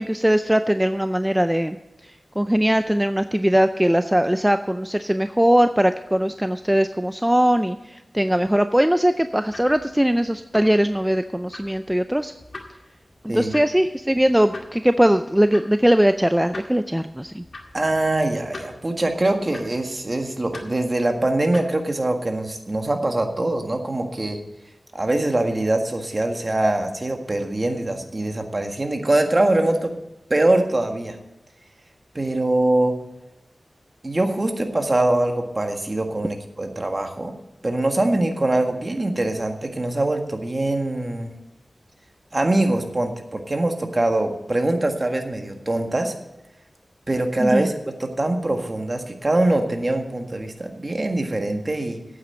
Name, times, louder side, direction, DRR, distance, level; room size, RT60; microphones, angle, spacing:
voice 1, 0.0-1.8 2.4-12.3 13.2-17.4 47.4-47.7, equal, 10° right, 9 dB, 0.5 m, -20 dB
sound 1, 9.4-22.1, left 2 dB, 65° left, 2.0 m, -45 dB
voice 2, 17.7-24.4 24.9-29.9 30.3-31.2 32.1-33.0 34.0-37.3 37.6-41.3 42.3-46.1 47.1-52.0, right 2 dB, 40° right, 4 dB, 1.7 m, -23 dB
8.9 x 8.4 x 8.8 m, 0.97 s
wide cardioid pair, 60°, 0 cm